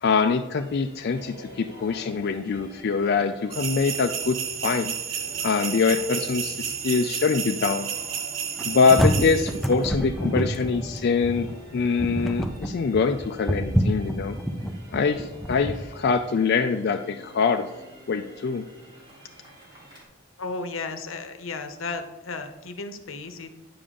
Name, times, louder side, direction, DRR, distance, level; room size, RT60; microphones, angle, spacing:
voice 1, 0.0-4.9 5.4-7.9 8.6-14.4 14.9-17.7 18.1-18.6, left 5 dB, 55° left, 5 dB, 0.4 m, -24 dB
sound 1, 0.5-20.0, equal, 25° right, 3.1 m, -47 dB
sound 2, 3.5-9.7, right 8 dB, 80° right, 0.7 m, -31 dB
sound 3, 8.6-15.8, equal, ahead, 0.5 m, -27 dB
voice 2, 20.4-23.5, left 3 dB, 85° left, 8 dB, 0.8 m, -34 dB
9.6 x 6.9 x 3.7 m, 1.0 s
head